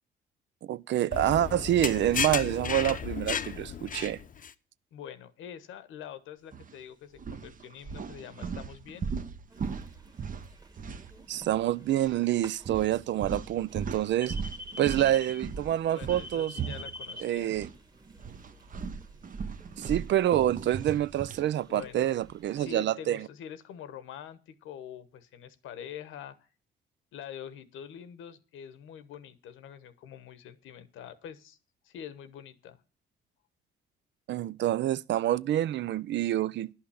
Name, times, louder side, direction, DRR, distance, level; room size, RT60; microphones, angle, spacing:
voice 1, 0.6-4.2 11.3-14.4 14.8-16.6 17.2-17.7 19.8-23.3 34.3-36.7, right 12 dB, 65° right, 0.5 m, -27 dB
sound 1, 1.1-4.5, left 7 dB, 45° left, 0.7 m, -33 dB
voice 2, 4.9-9.1 15.9-17.7 21.7-22.1 22.6-26.5 27.1-31.6 31.8-32.8, left 9 dB, 85° left, 1.2 m, -45 dB
sound 2, 6.5-6.7 7.2-11.6 11.9-12.1 12.6-17.8 18.1-21.5, right 6 dB, 40° right, 0.9 m, -38 dB
sound 3, 9.5-22.8, left 1 dB, 20° right, 1.5 m, -49 dB
11.0 x 5.8 x 8.5 m
cardioid pair, 90°, 20 cm